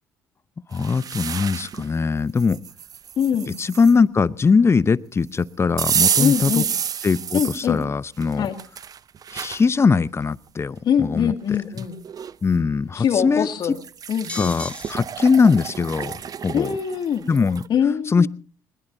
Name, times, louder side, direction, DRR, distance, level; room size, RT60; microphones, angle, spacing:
voice 1, 0.7-2.6 3.6-6.6 7.0-8.5 9.3-11.3 12.4-13.5 14.3-16.2 16.4-16.7 17.3-17.6 18.1-18.3, left 5 dB, 30° left, 18 dB, 0.8 m, -20 dB
sound 1, 0.7-1.9 2.4-3.9 5.8-7.7 8.2-9.6 10.2-10.3 11.4-11.5 11.8-12.3 13.6-17.7, right 8 dB, 45° right, 0.7 m, -29 dB
voice 2, 3.2-3.6 6.2-6.7 7.3-7.8 8.4-8.5 10.8-12.0 13.0-13.8 14.1-14.5 16.5-17.3 17.7-18.3, left 8 dB, 55° left, 6 dB, 2.4 m, -23 dB
sound 2, 11.5-11.8 14.1-14.9 15.5-15.7 16.0-16.4, left 2 dB, 15° left, 1.2 m, -35 dB
21.5 x 20.5 x 2.8 m, 0.38 s
hypercardioid pair, 55°, 9 cm